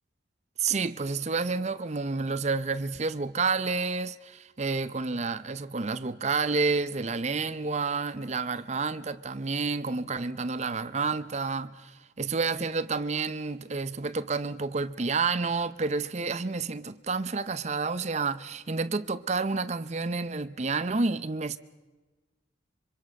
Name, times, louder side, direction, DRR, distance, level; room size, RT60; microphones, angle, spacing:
voice 1, 0.6-11.9 12.2-21.6, right 4 dB, 35° right, 0.6 m, -29 dB
26.0 x 24.5 x 5.4 m
head